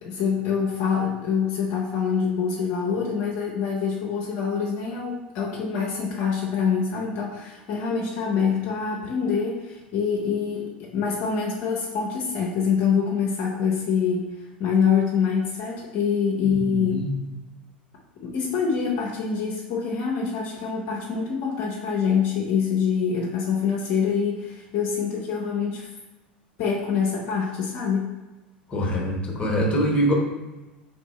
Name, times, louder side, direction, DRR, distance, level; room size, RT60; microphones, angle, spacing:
voice 1, 0.0-17.0 18.2-25.9 26.6-28.1, left 6 dB, 50° left, -2 dB, 0.6 m, -25 dB
voice 2, 16.4-17.1 28.7-30.1, equal, 20° left, -1 dB, 1.1 m, -24 dB
3.6 x 2.6 x 4.0 m, 1.1 s
figure-of-eight pair, 80°, 5 cm